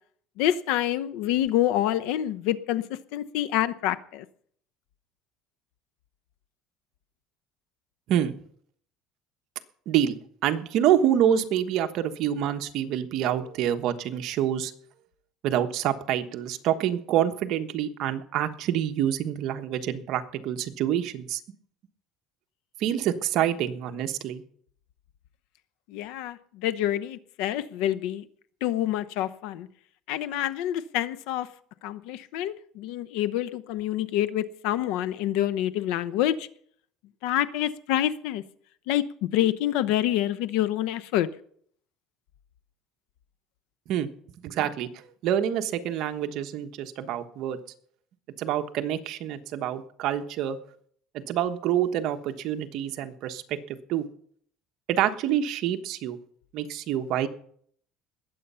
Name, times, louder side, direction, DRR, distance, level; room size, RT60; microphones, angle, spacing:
voice 1, 0.4-2.8 3.1-4.2 25.9-28.3 28.6-29.7 30.1-31.5 31.8-36.5 37.2-38.4 38.9-41.3, left 12 dB, 75° left, 0.9 m, -27 dB
voice 2, 9.9-14.7 15.4-21.4 22.8-24.4 43.9-44.1 44.4-47.6 48.4-50.6 51.1-53.6 53.9-54.0 54.9-56.2 56.5-57.3, right 10 dB, 60° right, 1.2 m, -27 dB
20.5 x 8.3 x 5.7 m
cardioid pair, 135°, 0 cm